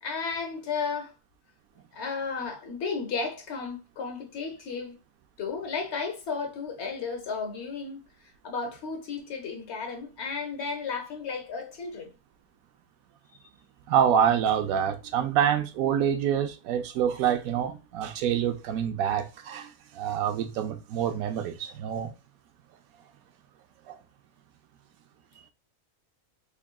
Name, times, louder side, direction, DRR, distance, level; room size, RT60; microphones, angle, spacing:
voice 1, 0.0-1.1 1.9-5.0 5.4-8.0 8.4-12.1, left 5 dB, 55° left, 1.1 m, -33 dB
voice 2, 13.9-22.1 23.9-24.0, right 9 dB, 80° right, 1.0 m, -26 dB
3.8 x 3.5 x 2.2 m
omnidirectional pair, 1.5 m